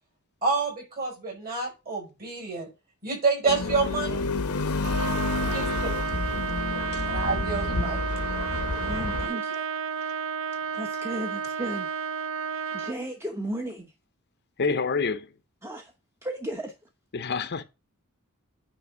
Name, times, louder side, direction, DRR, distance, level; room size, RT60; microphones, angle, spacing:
voice 1, 0.4-2.7 3.0-4.2 5.4-5.9 7.1-8.0, right 4 dB, 40° right, 4.9 m, -28 dB
sound 1, 3.5-9.3, left 3 dB, 80° left, 0.9 m, -29 dB
Trumpet, 4.8-13.0, right 6 dB, 60° right, 0.7 m, -32 dB
voice 2, 5.4-5.7 8.8-9.7 10.7-11.9 12.7-13.9 15.6-15.9 16.2-16.7, right 1 dB, 10° right, 0.9 m, -35 dB
voice 3, 14.6-15.3 17.1-17.6, left 4 dB, 50° left, 0.7 m, -27 dB
9.4 x 3.5 x 4.9 m
head